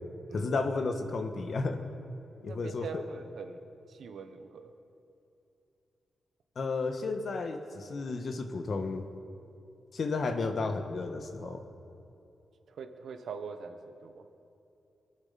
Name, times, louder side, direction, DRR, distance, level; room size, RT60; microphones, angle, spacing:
voice 1, 0.3-1.8 2.4-2.9 6.6-9.1 9.9-11.6, left 3 dB, 60° left, 6 dB, 1.3 m, -32 dB
voice 2, 2.4-3.6 3.9-4.7 11.4-11.6 12.7-14.2, right 5 dB, 80° right, 7 dB, 1.1 m, -43 dB
23.5 x 8.1 x 5.8 m, 2.8 s
cardioid pair, 80°, 0 cm